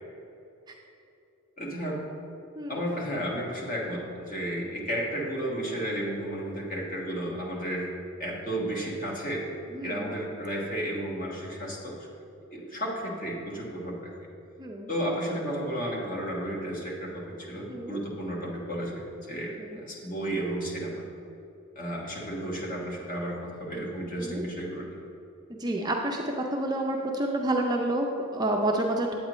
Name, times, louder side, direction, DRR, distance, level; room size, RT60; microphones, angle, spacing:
voice 1, 1.6-2.0 2.7-7.9 8.2-9.5 9.8-12.1 12.5-14.1 14.9-21.0 21.7-24.9, right 1 dB, 40° left, -3 dB, 1.4 m, -33 dB
voice 2, 9.7-10.1 14.6-14.9 17.7-18.0 19.6-19.8 24.2-24.5 25.5-29.1, right 1 dB, 20° right, 0 dB, 0.5 m, -29 dB
8.8 x 8.4 x 3.1 m, 2.8 s
head